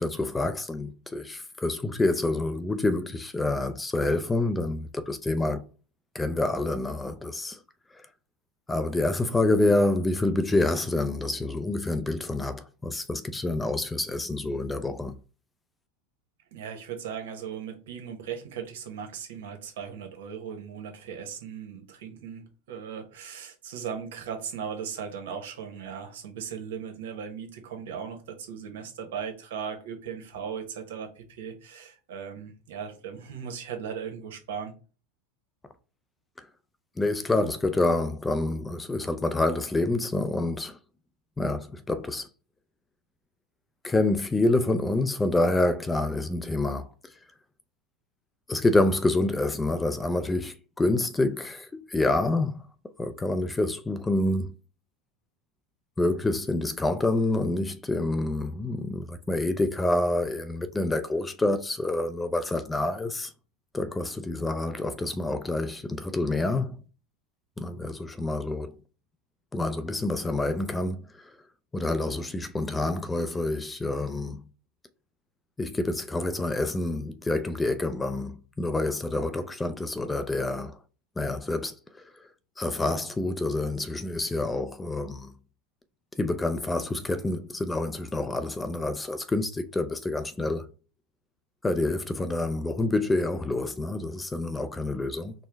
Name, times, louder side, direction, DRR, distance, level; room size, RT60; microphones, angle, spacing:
voice 1, 0.0-5.6 6.1-7.6 7.9-8.1 8.7-15.2 36.4-36.5 37.0-40.8 41.4-42.3 43.8-46.9 48.5-52.7 53.0-54.5 56.0-63.3 63.7-66.8 67.6-68.7 69.5-71.3 71.7-74.4 75.6-80.8 81.2-82.3 82.6-85.3 86.2-90.7 91.6-95.3, left 2 dB, 10° left, 0.3 m, -27 dB
voice 2, 16.5-34.8, right 7 dB, 80° right, 1.0 m, -38 dB
4.4 x 2.1 x 3.4 m
supercardioid pair, 130°, 0 cm